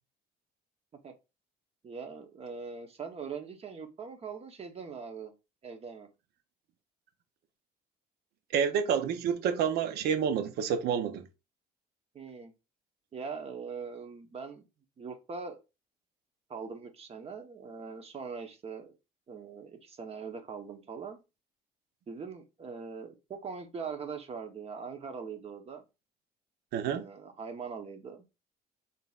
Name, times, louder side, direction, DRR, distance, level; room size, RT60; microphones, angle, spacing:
voice 1, 1.8-5.3 5.6-6.1 12.1-12.5 13.1-14.6 15.0-15.6 16.5-19.0 19.3-21.2 22.1-25.8 26.9-28.2, right 5 dB, 35° right, 0.9 m, -41 dB
voice 2, 8.5-11.2 26.7-27.1, right 7 dB, 75° right, 0.6 m, -29 dB
4.0 x 3.9 x 2.4 m
cardioid pair, 110°, 17 cm